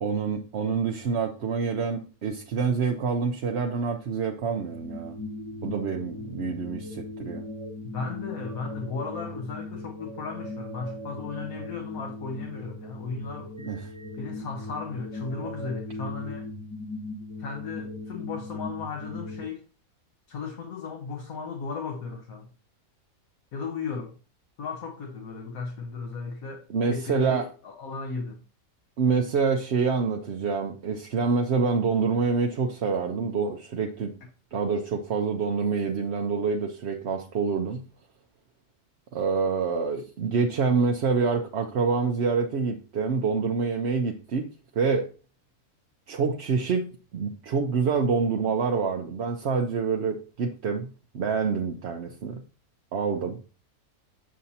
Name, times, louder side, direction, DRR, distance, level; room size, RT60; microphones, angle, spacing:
voice 1, 0.0-5.2 5.6-7.4 13.6-13.9 26.7-27.5 29.0-34.1 34.5-37.8 39.1-44.4 44.7-45.1 46.1-46.8 47.1-50.9 51.1-52.4 52.9-53.4, right 5 dB, 55° right, 0.8 m, -26 dB
sound 1, 4.6-19.4, left 1 dB, 15° left, 0.8 m, -39 dB
voice 2, 7.8-13.5 14.1-16.5 17.4-19.6 20.3-22.5 23.5-24.1 24.6-28.4, left 4 dB, 70° left, 1.4 m, -35 dB
7.5 x 7.0 x 2.7 m
omnidirectional pair, 1.6 m